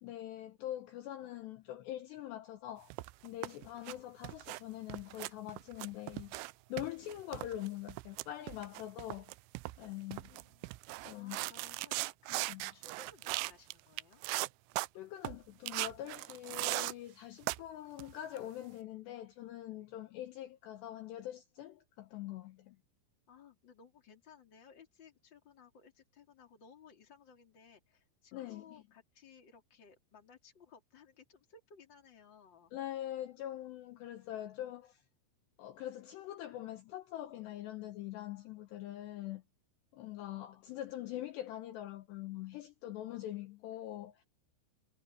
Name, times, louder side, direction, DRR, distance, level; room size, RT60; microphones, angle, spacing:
voice 1, 0.0-2.9 3.2-6.3 6.7-9.3 9.8-10.5 11.0-11.4 12.5-12.7 14.9-22.8 28.3-28.8 32.7-35.0 35.6-39.4 39.9-44.2, left 13 dB, 70° left, 2.9 m, -43 dB
sound 1, 2.9-4.0 4.2-4.6 4.9-6.5 6.8-13.7 14.0-14.9 15.3-15.4 15.7-16.9 17.4-17.6 18.0-18.4, right 22 dB, 85° right, 2.8 m, -39 dB
voice 2, 11.1-12.5 12.7-14.2 23.3-32.7, left 6 dB, 25° left, 3.2 m, -59 dB
omnidirectional pair, 5.6 m